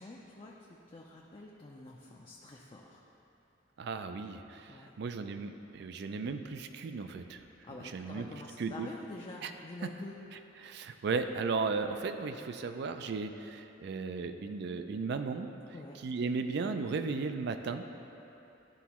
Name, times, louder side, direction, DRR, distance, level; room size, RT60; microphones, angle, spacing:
voice 1, 0.0-3.0 4.7-4.9 7.6-10.2 15.7-16.0, left 2 dB, 30° left, -2 dB, 0.4 m, -47 dB
voice 2, 3.8-4.7 5.0-7.4 7.8-8.3 8.6-8.9 9.4-9.5 10.6-15.5 16.0-17.8, right 4 dB, 60° right, 8 dB, 0.4 m, -35 dB
11.5 x 4.1 x 2.9 m, 2.9 s
head